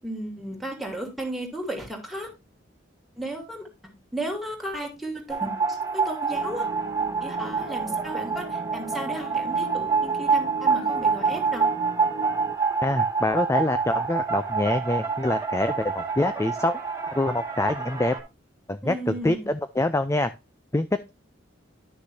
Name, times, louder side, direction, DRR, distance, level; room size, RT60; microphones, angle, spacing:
voice 1, 0.0-2.3 3.2-3.7 4.1-6.7 7.2-11.7 18.8-19.5, right 1 dB, ahead, 1 dB, 2.9 m, -34 dB
sound 1, 5.3-18.2, right 5 dB, 20° right, 2.7 m, -27 dB
sound 2, 6.3-12.6, right 1 dB, 40° right, 0.7 m, -39 dB
voice 2, 12.8-16.8 17.1-18.1 18.7-20.3 20.7-21.1, left 2 dB, 15° left, 11 dB, 0.5 m, -25 dB
11.5 x 6.5 x 2.7 m, 0.25 s
head